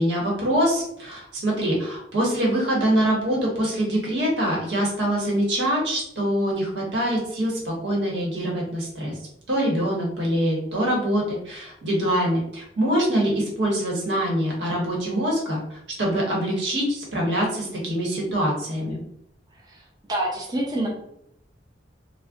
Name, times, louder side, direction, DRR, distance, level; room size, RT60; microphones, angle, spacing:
voice 1, 0.0-9.1 9.5-15.6 16.0-19.0, equal, 80° right, -2 dB, 1.1 m, -24 dB
voice 2, 20.1-20.9, right 1 dB, 25° right, -3 dB, 0.5 m, -25 dB
2.4 x 2.1 x 3.5 m, 0.74 s
head